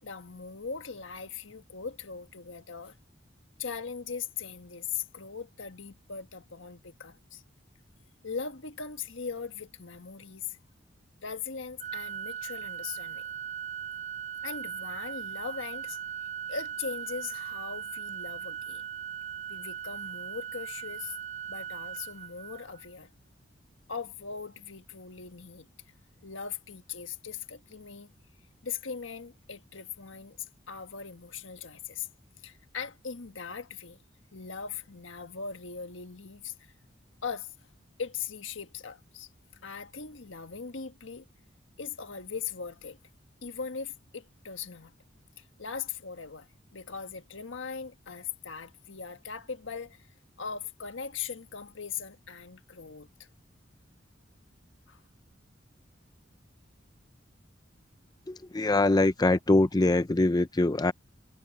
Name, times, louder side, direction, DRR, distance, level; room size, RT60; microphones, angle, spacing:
voice 1, 0.0-2.9 3.6-7.4 8.2-10.6 11.2-13.3 14.4-16.0 16.5-18.9 19.5-21.2 21.5-23.1 23.9-25.7 26.2-28.1 28.6-30.4 30.7-32.1 32.4-34.0 34.3-36.5 37.2-37.5 38.0-39.3 39.6-41.3 41.8-43.0 43.4-44.9 45.4-50.1 50.4-53.3 54.9-55.0, left 6 dB, 80° left, 1.4 m, -39 dB
Organ, 11.8-22.9, right 8 dB, 35° right, 0.5 m, -39 dB
voice 2, 58.3-60.9, left 2 dB, 20° left, 0.5 m, -23 dB
head